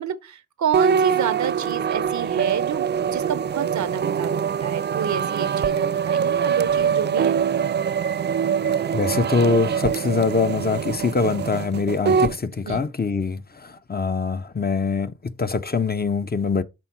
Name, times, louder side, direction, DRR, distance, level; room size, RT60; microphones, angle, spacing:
voice 1, 0.0-7.4 12.7-12.8, right 8 dB, 70° right, 0.8 m, -29 dB
sound 1, 0.7-12.4, right 7 dB, 35° right, 0.4 m, -23 dB
voice 2, 8.7-16.6, left 4 dB, 30° left, 0.8 m, -23 dB
6.3 x 3.5 x 5.7 m
supercardioid pair, 40°, 30 cm